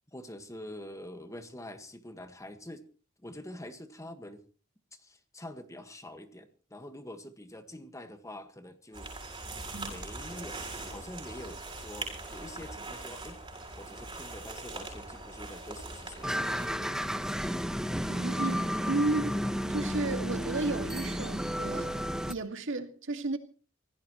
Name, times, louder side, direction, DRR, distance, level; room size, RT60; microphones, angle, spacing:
voice 1, 0.1-2.8 3.2-4.4 4.9-9.1 9.9-10.6 10.9-13.4 13.7-16.3, left 1 dB, 15° left, 1.7 m, -45 dB
sound 1, 8.9-16.7, right 2 dB, 25° right, 7.1 m, -41 dB
sound 2, 16.2-22.3, equal, 5° right, 1.1 m, -32 dB
voice 2, 18.1-23.4, right 2 dB, 65° right, 2.2 m, -33 dB
25.5 x 17.0 x 3.1 m
head